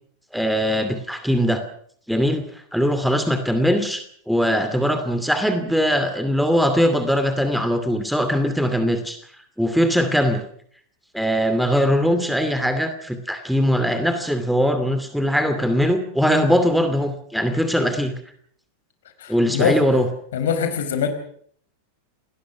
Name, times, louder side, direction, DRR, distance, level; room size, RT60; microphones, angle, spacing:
voice 1, 0.3-1.6 2.1-2.4 2.7-9.2 9.6-10.4 11.1-18.1 19.3-20.1, equal, ahead, 8 dB, 2.5 m, -21 dB
voice 2, 19.2-19.8 20.3-21.1, left 7 dB, 60° left, 8 dB, 4.7 m, -22 dB
28.5 x 19.5 x 6.2 m, 0.62 s
figure-of-eight pair, 90°, 0 cm